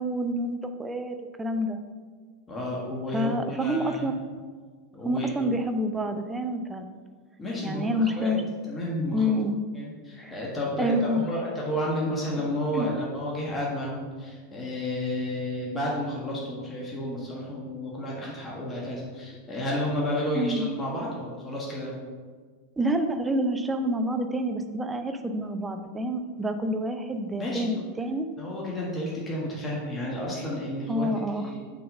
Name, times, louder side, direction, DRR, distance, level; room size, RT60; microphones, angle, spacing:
voice 1, 0.0-1.8 3.1-4.1 5.0-6.9 7.6-8.4 9.1-9.6 10.2-10.4 10.8-11.2 12.7-12.9 20.3-20.7 22.8-28.3 30.9-31.5, equal, 10° right, 7 dB, 0.6 m, -28 dB
voice 2, 2.5-4.1 4.9-5.5 7.4-8.3 8.7-9.2 9.7-21.9 27.4-27.7 28.4-31.1 31.3-31.6, left 1 dB, 15° left, -4 dB, 1.5 m, -31 dB
6.5 x 4.1 x 5.1 m, 1.5 s
figure-of-eight pair, 90°, 0 cm